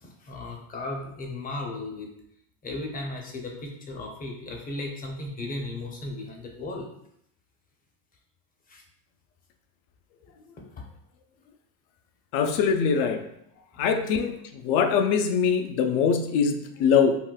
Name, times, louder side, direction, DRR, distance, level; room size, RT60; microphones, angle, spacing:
voice 1, 0.0-2.1 2.6-6.9 8.7-8.8, left 2 dB, 20° left, 0 dB, 0.5 m, -35 dB
voice 2, 12.3-13.2 13.8-14.3 14.6-17.2, left 6 dB, 75° left, 6 dB, 0.5 m, -22 dB
3.8 x 2.2 x 2.2 m, 0.75 s
supercardioid pair, 120°, 44 cm